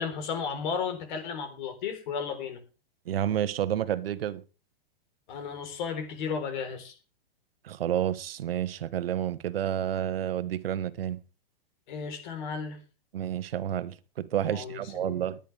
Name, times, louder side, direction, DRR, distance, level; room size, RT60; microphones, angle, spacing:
voice 1, 0.0-2.6 5.3-6.9 11.9-12.8 14.5-15.2, left 6 dB, 55° left, 4.0 m, -34 dB
voice 2, 3.1-4.4 7.6-11.2 13.1-15.4, right 10 dB, 75° right, 1.3 m, -30 dB
20.5 x 10.0 x 3.4 m
hypercardioid pair, 150°, 29 cm